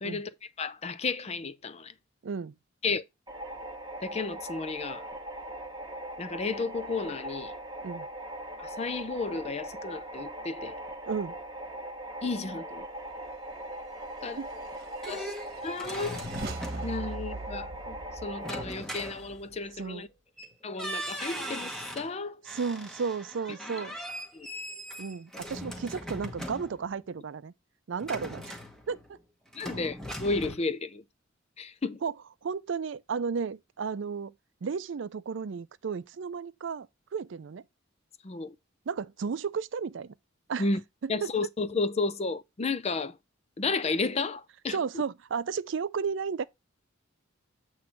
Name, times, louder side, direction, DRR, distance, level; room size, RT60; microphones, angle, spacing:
voice 1, 0.6-1.9 2.8-3.0 4.0-5.0 6.2-7.5 8.6-10.7 12.2-12.8 14.2-14.4 15.1-15.3 15.6-16.2 16.8-18.0 18.2-20.1 20.6-22.4 23.8-23.9 24.3-24.5 29.5-31.0 31.6-32.0 38.2-38.5 40.6-40.8 41.1-43.2 43.6-44.8, left 3 dB, 30° left, 0.5 m, -32 dB
voice 2, 2.2-2.5 7.8-8.1 11.1-11.4 14.4-14.5 15.1-15.3 19.8-20.0 22.4-24.0 25.0-27.5 27.9-28.5 28.9-29.0 32.0-32.1 32.4-34.3 34.6-37.6 38.9-40.1 40.5-40.7 41.0-41.5 44.7-46.4, right 5 dB, 65° right, 0.4 m, -33 dB
sound 1, 3.3-18.6, right 1 dB, 20° right, 1.2 m, -40 dB
sound 2, 14.3-19.9, right 2 dB, 50° right, 1.3 m, -42 dB
sound 3, 14.6-17.1 18.4-19.7 20.4-20.5 20.8-22.1 22.4-27.0 28.0-29.2 29.5-30.5, equal, 5° left, 1.2 m, -40 dB
7.9 x 3.1 x 5.7 m
head